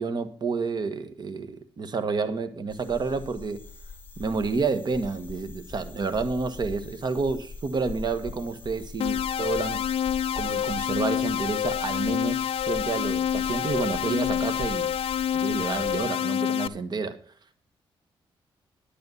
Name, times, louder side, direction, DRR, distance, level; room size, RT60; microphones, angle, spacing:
voice 1, 0.0-3.6 4.2-9.8 10.4-14.9 15.3-17.2, right 4 dB, 50° right, 1.5 m, -29 dB
sound 1, 2.7-16.0, left 3 dB, 20° left, 3.5 m, -42 dB
sound 2, 9.0-16.7, left 9 dB, 80° left, 0.5 m, -27 dB
11.0 x 8.6 x 5.6 m
cardioid pair, 100°, 9 cm